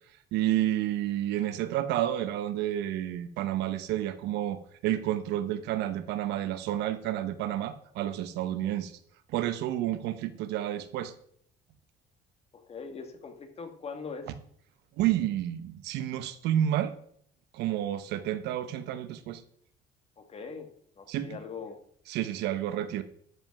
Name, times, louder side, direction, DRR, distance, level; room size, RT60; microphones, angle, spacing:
voice 1, 0.3-8.9 9.3-11.1 15.0-16.9 17.5-19.4 21.1-21.3 22.1-23.0, right 12 dB, 85° right, 12 dB, 0.9 m, -30 dB
voice 2, 12.5-14.3 20.2-20.7 21.0-21.8, left 5 dB, 35° left, 6 dB, 1.9 m, -41 dB
12.5 x 5.3 x 5.9 m, 0.64 s
cardioid pair, 110°, 17 cm